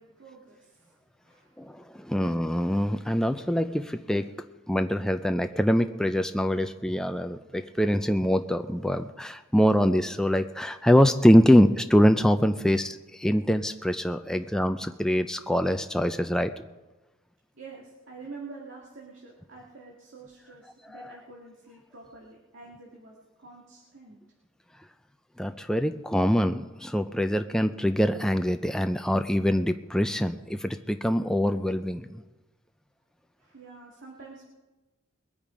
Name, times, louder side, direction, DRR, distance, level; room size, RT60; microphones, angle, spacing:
voice 1, 0.0-1.7 12.6-12.8 14.3-14.6 17.5-24.2 33.4-34.4, right 3 dB, 70° right, -3 dB, 2.1 m, -47 dB
voice 2, 1.6-4.3 4.7-16.5 25.4-32.2, equal, 5° left, 7 dB, 0.4 m, -24 dB
21.0 x 8.8 x 5.1 m, 1.1 s
head